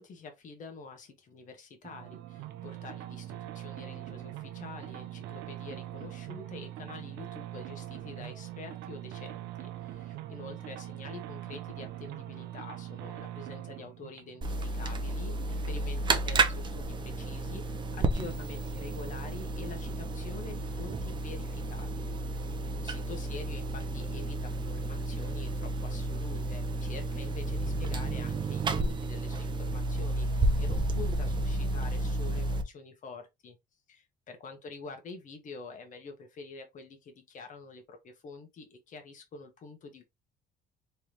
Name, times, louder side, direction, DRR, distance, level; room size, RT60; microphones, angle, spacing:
voice 1, 0.0-33.6 33.9-40.0, left 4 dB, 50° left, 1.3 m, -47 dB
sound 1, 1.8-16.0, right 13 dB, 90° right, 0.6 m, -43 dB
sound 2, 14.4-32.6, right 2 dB, 25° right, 0.7 m, -32 dB
3.5 x 3.3 x 3.0 m
cardioid pair, 110°, 17 cm